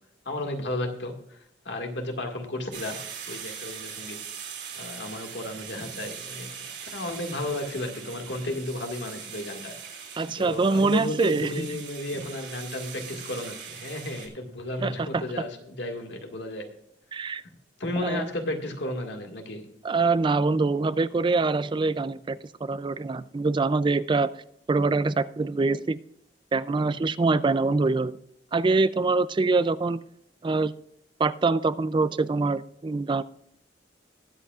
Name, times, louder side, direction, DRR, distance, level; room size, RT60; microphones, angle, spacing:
voice 1, 0.3-1.4 1.7-3.0 3.3-4.2 4.7-10.0 10.4-16.7 17.8-19.7, left 1 dB, 75° left, 3 dB, 2.0 m, -33 dB
sound 1, 2.7-14.3, right 7 dB, 75° right, 3.2 m, -41 dB
voice 2, 10.2-11.7 14.8-15.2 17.1-17.4 18.0-18.3 19.8-24.3 24.7-26.0 26.5-28.2 28.5-30.0 30.4-30.7 31.2-33.2, right 3 dB, 25° right, 16 dB, 0.4 m, -24 dB
21.0 x 8.0 x 2.4 m, 0.74 s
head